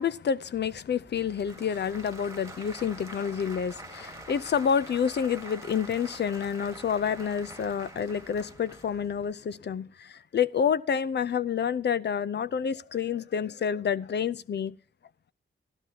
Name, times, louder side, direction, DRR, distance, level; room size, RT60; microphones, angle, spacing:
voice 1, 0.0-14.7, left 7 dB, 55° left, 0.5 m, -28 dB
Applause / Crowd, 0.5-9.3, right 2 dB, 15° right, 1.5 m, -46 dB
16.0 x 12.5 x 2.9 m
cardioid pair, 70°, 21 cm